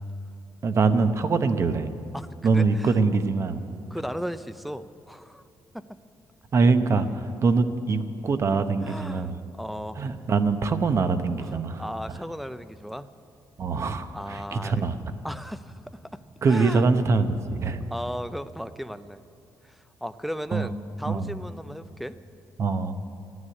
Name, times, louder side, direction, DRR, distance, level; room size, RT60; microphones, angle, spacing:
voice 1, 0.6-1.9 2.4-3.6 6.5-9.3 10.0-11.8 13.6-15.0 16.4-17.8 20.5-20.7 21.1-21.3 22.6-23.0, right 4 dB, 40° right, 9 dB, 0.8 m, -23 dB
voice 2, 2.1-3.0 3.9-5.4 5.7-5.9 8.8-10.1 11.4-13.1 14.1-14.8 15.2-16.9 17.9-19.2 19.6-22.2, equal, ahead, 11 dB, 0.4 m, -36 dB
14.5 x 9.6 x 9.8 m, 2.8 s
cardioid pair, 140°, 7 cm